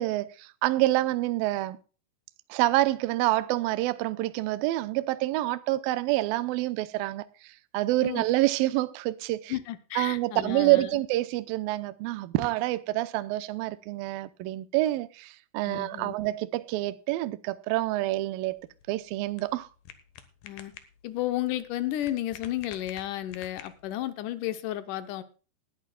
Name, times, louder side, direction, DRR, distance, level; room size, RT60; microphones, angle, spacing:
voice 1, 0.0-1.8 2.5-9.5 10.0-19.7, right 17 dB, 80° right, 2.2 m, -27 dB
voice 2, 9.5-11.0 15.7-16.1 20.4-20.7 21.0-25.2, left 14 dB, 85° left, 1.8 m, -32 dB
sound 1, 18.4-24.1, left 9 dB, 65° left, 2.7 m, -50 dB
20.0 x 11.0 x 2.3 m
omnidirectional pair, 4.8 m